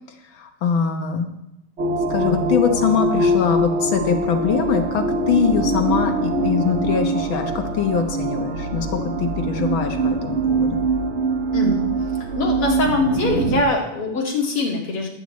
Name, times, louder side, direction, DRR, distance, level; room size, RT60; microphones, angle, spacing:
voice 1, 0.3-1.3 2.1-10.8, left 6 dB, 65° left, 5 dB, 1.9 m, -23 dB
sound 1, 1.8-13.6, right 2 dB, 60° right, 0.7 m, -23 dB
voice 2, 11.5-11.9 12.4-15.1, left 3 dB, 85° left, -2 dB, 3.0 m, -22 dB
19.5 x 8.7 x 3.1 m, 0.83 s
omnidirectional pair, 2.4 m